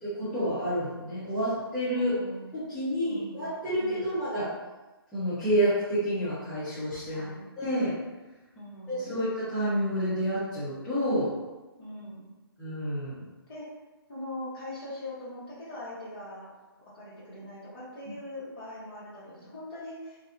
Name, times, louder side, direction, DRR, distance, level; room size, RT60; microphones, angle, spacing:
voice 1, 0.0-2.2 2.7-4.5 5.1-7.3 7.6-8.0 8.9-11.3 12.6-13.3, equal, 5° left, -17 dB, 0.6 m, -29 dB
voice 2, 1.9-2.4 3.0-3.4 3.7-4.2 7.1-7.5 8.5-9.1 11.8-12.3 13.5-13.7 14.1-16.5 16.9-20.2, left 1 dB, 25° left, -10 dB, 1.0 m, -41 dB
2.6 x 2.2 x 2.5 m, 1.2 s
hypercardioid pair, 155°, 13 cm